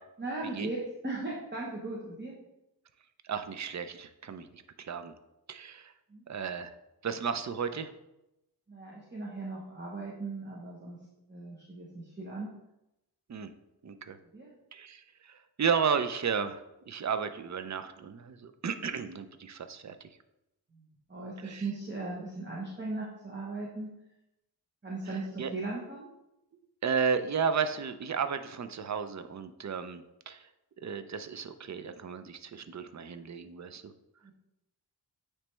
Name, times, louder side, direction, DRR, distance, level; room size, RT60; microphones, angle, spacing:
voice 1, 0.2-2.3 6.1-6.2 8.7-11.0 11.3-12.5 14.3-14.5 20.7-23.9 24.8-26.1 34.2-34.3, right 2 dB, 25° right, -4 dB, 0.9 m, -38 dB
voice 2, 3.2-5.1 5.5-5.9 6.3-6.7 7.0-7.9 13.3-13.5 13.8-14.2 14.7-20.1 21.4-21.6 25.1-25.5 26.8-30.5 30.8-33.9, right 6 dB, 45° right, 10 dB, 0.5 m, -33 dB
8.9 x 3.2 x 3.2 m, 0.90 s
wide cardioid pair, 90°, 42 cm